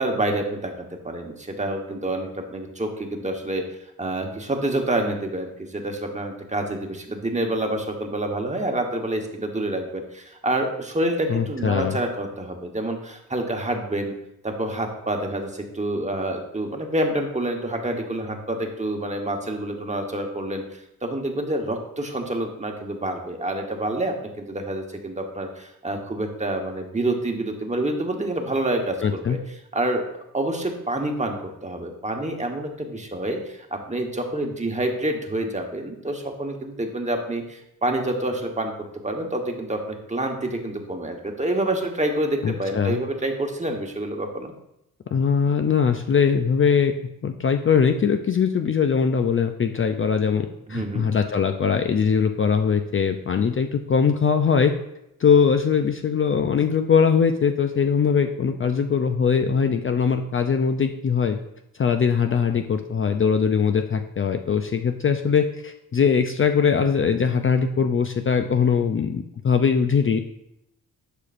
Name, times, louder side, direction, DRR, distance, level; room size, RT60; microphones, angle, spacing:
voice 1, 0.0-3.6 4.0-14.1 14.4-29.4 29.7-30.0 30.3-38.7 39.0-44.5 50.7-51.1, right 1 dB, 20° right, 3 dB, 1.2 m, -27 dB
voice 2, 11.3-12.0 29.0-29.4 42.4-43.0 45.1-46.9 47.2-54.7 55.2-61.4 61.8-70.2, left 6 dB, 35° left, 7 dB, 0.5 m, -21 dB
11.0 x 4.9 x 2.5 m, 0.82 s
cardioid pair, 75°, 37 cm